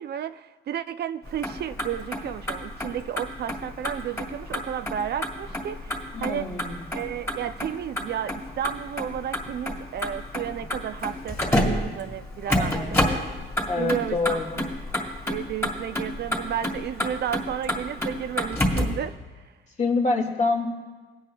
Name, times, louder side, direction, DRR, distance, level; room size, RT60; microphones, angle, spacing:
voice 1, 0.0-6.5 6.9-13.0 13.8-14.6 15.3-19.5, right 10 dB, 55° right, 11 dB, 0.4 m, -32 dB
Motor vehicle (road), 1.3-19.0, left 1 dB, 15° left, 2.6 m, -30 dB
voice 2, 6.1-6.9 12.5-12.9 13.7-14.6 19.8-20.7, left 3 dB, 35° left, 1 dB, 1.8 m, -26 dB
22.5 x 9.0 x 2.3 m, 1.3 s
cardioid pair, 90°, 20 cm